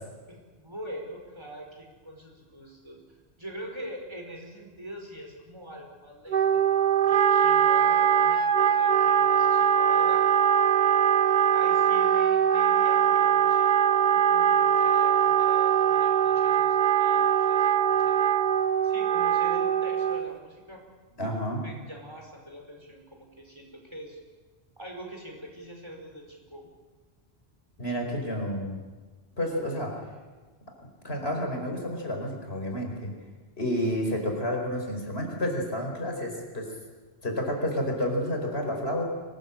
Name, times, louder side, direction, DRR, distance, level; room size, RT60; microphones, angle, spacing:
voice 1, 0.3-3.0 3.4-6.7 7.1-10.3 11.5-18.2 18.8-20.8 21.6-24.2 24.8-26.7, equal, 25° right, 1 dB, 5.0 m, -43 dB
Wind instrument woodwind instrument, 6.3-20.4, right 9 dB, 50° right, 1.0 m, -22 dB
voice 2, 21.2-21.6 27.8-28.8 29.4-30.0 31.0-33.1 33.6-36.7 37.2-39.1, equal, 70° left, 2 dB, 5.1 m, -30 dB
25.0 x 19.5 x 8.8 m, 1.3 s
omnidirectional pair, 1.1 m